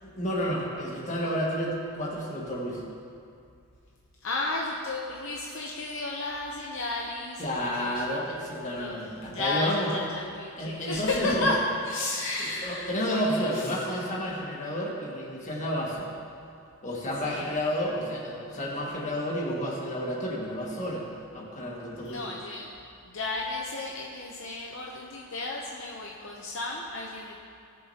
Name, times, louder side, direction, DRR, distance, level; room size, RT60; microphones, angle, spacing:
voice 1, 0.0-2.8 7.4-9.9 10.6-11.5 12.6-16.1 16.8-21.1 21.3-22.2, equal, 35° left, -4 dB, 1.8 m, -30 dB
voice 2, 4.2-7.5 7.7-8.5 8.8-9.0 9.3-11.6 11.8-14.1 17.2-17.6 22.0-22.7 23.1-27.4, left 2 dB, 60° left, -2 dB, 0.8 m, -33 dB
18.5 x 6.5 x 2.9 m, 2.4 s
head